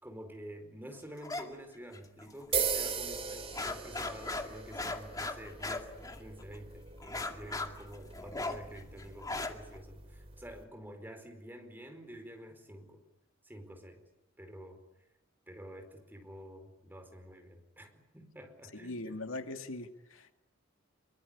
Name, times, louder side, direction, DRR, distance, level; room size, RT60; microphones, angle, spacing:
voice 1, 0.0-5.9 6.2-13.0 13.4-14.0 14.4-14.8 15.5-19.2, equal, 10° right, 5 dB, 4.6 m, -49 dB
sound 1, 1.2-1.4 1.7-2.5 2.9-3.0 3.3-6.6 7.0-9.8, left 2 dB, 20° left, 2.2 m, -38 dB
sound 2, 2.5-10.6, right 6 dB, 30° right, 3.1 m, -39 dB
voice 2, 18.8-20.3, left 2 dB, 90° left, 6 dB, 2.2 m, -41 dB
25.5 x 23.5 x 10.0 m, 0.94 s
head